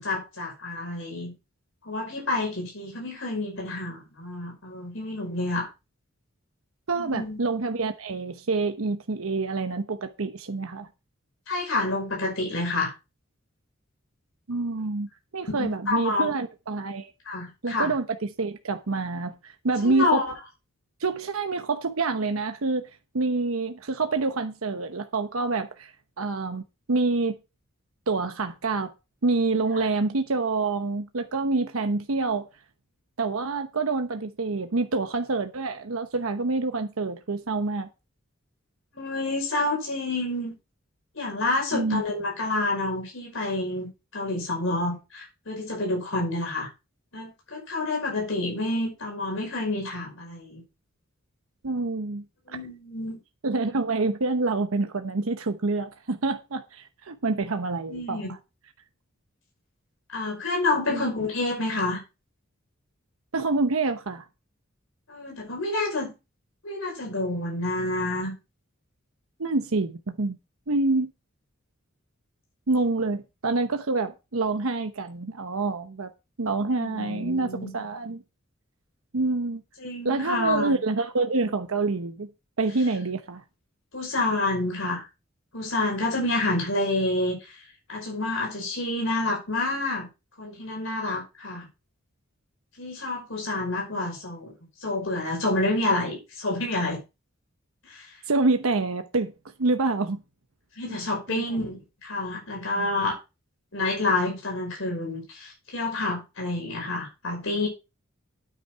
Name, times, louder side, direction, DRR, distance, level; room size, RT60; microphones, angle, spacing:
voice 1, 0.0-1.3 1.9-5.7 7.0-7.4 11.5-12.9 15.5-16.3 17.3-17.9 19.8-20.3 38.9-40.5 41.2-43.9 44.1-46.7 47.1-50.6 52.5-53.2 57.9-58.3 60.1-62.0 65.1-66.1 66.6-68.3 76.8-77.7 79.8-80.8 83.9-85.0 85.5-87.4 87.9-90.1 90.4-91.7 92.8-94.5 94.8-97.0 97.9-98.1 100.8-103.2 103.7-107.7, left 2 dB, 70° left, 5.6 m, -28 dB
voice 2, 6.9-10.9 14.5-17.1 17.6-20.2 21.0-22.9 23.1-26.6 26.9-27.4 28.1-28.9 29.2-32.5 33.2-37.9 41.7-42.0 51.6-52.2 53.4-58.4 60.9-61.0 63.3-64.2 69.4-70.4 70.7-71.1 72.7-76.1 76.4-78.2 79.1-79.6 80.0-82.3 82.6-83.4 98.3-99.3 99.6-100.2 100.9-101.0 101.3-101.6 102.8-102.9, right 3 dB, 90° right, 0.9 m, -27 dB
9.6 x 8.6 x 4.5 m
head